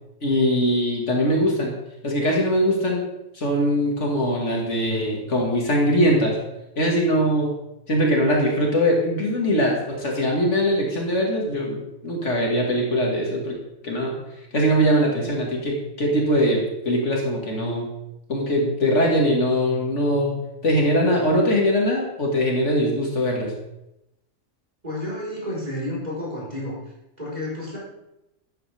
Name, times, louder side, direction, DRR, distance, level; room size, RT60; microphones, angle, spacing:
voice 1, 0.2-1.8 2.0-3.0 3.3-6.4 6.8-7.5 7.9-13.6 13.8-14.2 14.5-17.9 18.3-20.4 20.6-23.5, equal, 60° left, -1 dB, 2.2 m, -21 dB
voice 2, 24.8-26.8 27.2-27.8, left 1 dB, 30° right, -6 dB, 4.6 m, -30 dB
12.5 x 9.1 x 3.4 m, 0.89 s
omnidirectional pair, 1.4 m